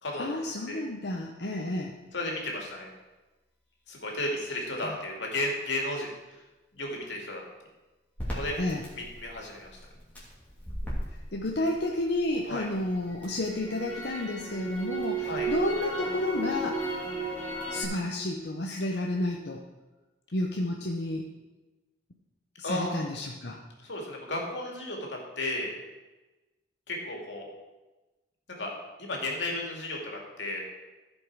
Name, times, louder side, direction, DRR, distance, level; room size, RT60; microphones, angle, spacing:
voice 1, 0.2-2.0 4.8-5.0 8.6-8.8 11.3-16.8 17.7-19.6 20.3-21.3 22.6-23.6, left 1 dB, 65° left, -1 dB, 0.8 m, -31 dB
voice 2, 2.1-2.9 3.9-6.1 6.7-7.4 8.3-8.6 8.9-9.7 12.5-12.7 15.2-15.5 22.6-23.1 23.8-25.7 26.9-27.4 28.6-28.7 29.0-30.0 30.4-30.6, left 1 dB, 85° left, 0 dB, 2.3 m, -33 dB
Crackle, 8.2-12.3 12.7-17.8, right 2 dB, 10° left, 2.7 m, -35 dB
15.0 x 5.4 x 4.7 m, 1.1 s
head